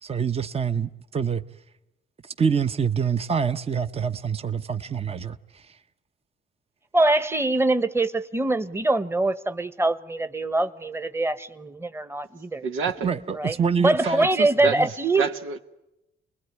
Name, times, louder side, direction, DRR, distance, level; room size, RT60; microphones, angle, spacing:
voice 1, 0.0-1.4 2.2-5.8 13.0-14.9, right 6 dB, 30° right, 0.9 m, -26 dB
voice 2, 6.9-12.6 13.4-13.5 13.8-15.3, right 2 dB, 10° right, 1.2 m, -23 dB
voice 3, 12.6-13.1 14.0-14.3 14.6-15.6, right 6 dB, 90° right, 1.5 m, -29 dB
28.5 x 21.0 x 9.6 m
cardioid pair, 90°, 20 cm